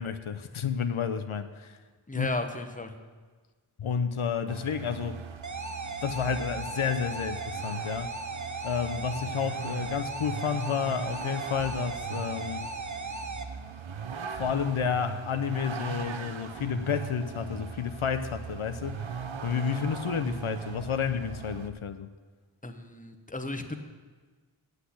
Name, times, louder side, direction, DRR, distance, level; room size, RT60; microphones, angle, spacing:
voice 1, 0.0-1.8 2.1-2.3 3.8-5.2 6.0-8.1 8.6-12.6 14.4-22.1, left 7 dB, 85° left, 0.7 m, -31 dB
voice 2, 2.1-2.9 22.6-23.8, left 2 dB, 15° left, 0.9 m, -34 dB
Vehicle, 4.5-21.7, right 6 dB, 75° right, 0.7 m, -40 dB
sound 1, 5.4-13.4, right 3 dB, 40° right, 0.9 m, -37 dB
8.2 x 8.0 x 8.3 m
wide cardioid pair, 50°, 48 cm